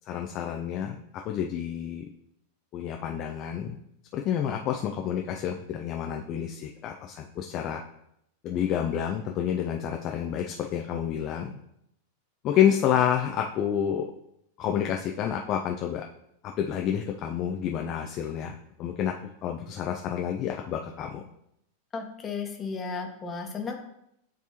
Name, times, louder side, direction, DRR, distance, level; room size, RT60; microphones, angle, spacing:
voice 1, 0.1-1.0 1.2-2.1 2.7-3.8 4.1-7.8 8.4-11.5 12.4-14.0 14.6-16.0 16.4-19.1 19.4-21.2, left 9 dB, 35° left, 2 dB, 0.4 m, -29 dB
voice 2, 21.9-23.7, left 5 dB, 20° left, 3 dB, 1.0 m, -34 dB
9.7 x 3.4 x 2.9 m, 0.77 s
figure-of-eight pair, 90°, 0 cm